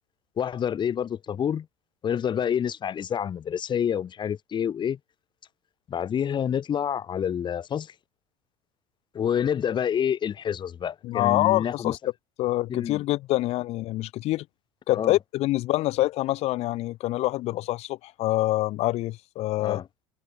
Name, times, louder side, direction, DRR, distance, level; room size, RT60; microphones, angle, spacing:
voice 1, 0.4-1.7 2.0-5.0 5.9-7.9 9.1-12.0 12.7-13.0 14.9-15.2 19.6-19.9, left 8 dB, 35° left, 4.4 m, -28 dB
voice 2, 11.0-12.0 12.4-14.5 14.9-19.8, left 17 dB, 50° left, 4.1 m, -26 dB
figure-of-eight pair, 70°, 14 cm